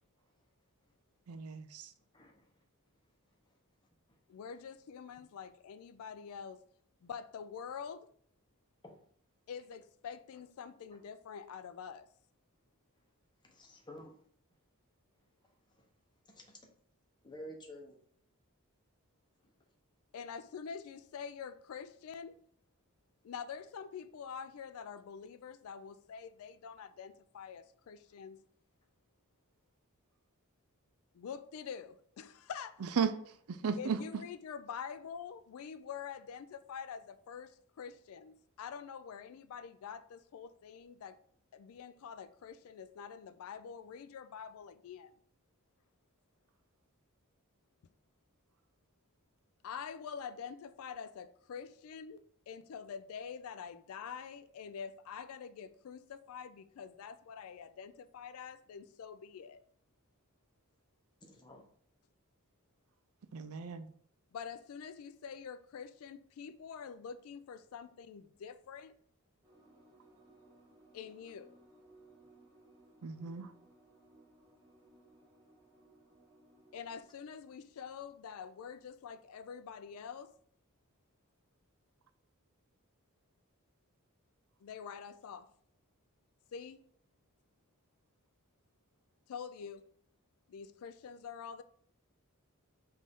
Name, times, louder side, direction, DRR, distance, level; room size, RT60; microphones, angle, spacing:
voice 1, 1.3-1.9 32.8-34.2 63.3-63.9 73.0-73.5, right 6 dB, 80° right, 0.4 m, -36 dB
voice 2, 2.1-2.5 8.8-9.0 13.4-14.2 16.3-16.6 17.2-17.9 61.2-61.6, equal, 20° left, 0.8 m, -50 dB
voice 3, 4.3-6.6 7.0-8.1 9.5-12.1 20.1-22.4 23.2-28.4 31.1-32.8 33.8-41.2 41.5-45.1 49.6-52.2 52.5-59.6 64.3-68.9 70.9-71.5 76.7-80.3 84.6-85.5 86.5-86.8 89.3-89.8 90.5-91.6, left 7 dB, 75° left, 0.3 m, -46 dB
sound 1, 69.4-77.0, right 2 dB, 15° right, 1.4 m, -63 dB
5.3 x 2.6 x 3.5 m
head